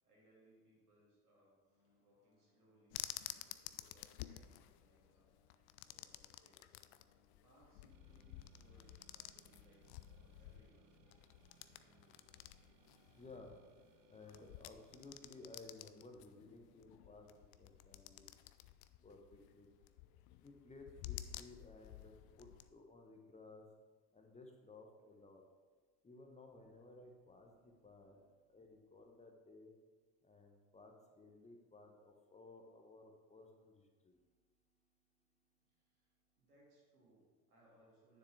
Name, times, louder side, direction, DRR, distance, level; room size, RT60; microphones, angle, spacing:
voice 1, 0.0-5.3 5.8-6.8 7.4-10.9 35.8-38.2, right 1 dB, 75° right, -5 dB, 2.8 m, -70 dB
sound 1, 1.6-18.1, left 3 dB, 75° left, 2.0 m, -79 dB
sound 2, 2.9-22.7, left 14 dB, 50° left, 0.5 m, -53 dB
sound 3, 7.9-15.7, right 9 dB, 45° right, 0.7 m, -70 dB
voice 2, 13.1-13.5 14.1-18.3 19.0-19.7 20.4-23.6 24.1-25.4 26.0-28.2 28.5-29.8 30.2-34.2, left 2 dB, 15° left, 2 dB, 1.0 m, -58 dB
9.6 x 6.9 x 3.4 m, 1.4 s
figure-of-eight pair, 65°, 45 cm